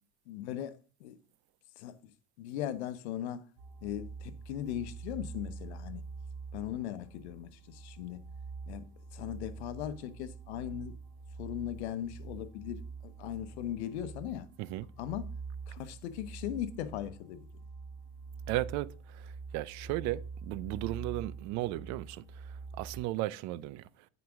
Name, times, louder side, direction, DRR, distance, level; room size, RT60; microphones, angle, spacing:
voice 1, 0.3-1.2 1.8-2.0 2.4-3.4 3.8-6.0 6.5-8.3 8.7-8.9 9.1-11.0 11.4-14.5 15.0-15.3 15.7-17.5, left 11 dB, 85° left, 0.9 m, -39 dB
sound 1, 3.6-23.0, right 4 dB, 80° right, 2.7 m, -45 dB
voice 2, 18.5-23.8, right 16 dB, 60° right, 0.6 m, -36 dB
9.5 x 5.1 x 3.6 m
supercardioid pair, 115°, 32 cm